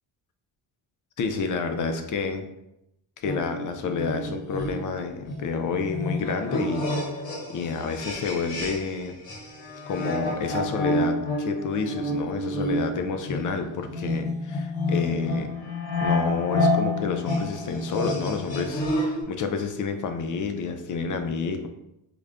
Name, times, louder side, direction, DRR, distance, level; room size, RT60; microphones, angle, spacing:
voice 1, 1.2-2.5 3.2-6.8 7.1-9.1 9.9-15.5 16.0-21.7, left 5 dB, 45° left, 6 dB, 0.5 m, -29 dB
sound 1, 3.2-9.0 9.3-19.2, left 1 dB, 85° left, 0.9 m, -29 dB
4.9 x 2.2 x 2.4 m, 0.85 s
cardioid pair, 100°, 44 cm